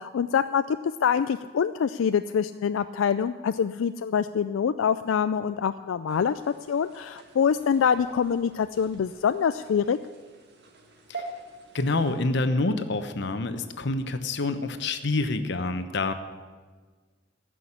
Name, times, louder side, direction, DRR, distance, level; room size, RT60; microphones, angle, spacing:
voice 1, 0.0-6.4 6.7-10.0, left 7 dB, 85° left, 11 dB, 0.4 m, -25 dB
sound 1, 6.1-12.2, right 3 dB, 60° right, 1.7 m, -46 dB
voice 2, 11.7-16.1, left 2 dB, 60° left, 9 dB, 1.0 m, -27 dB
15.5 x 6.3 x 9.9 m, 1.5 s
head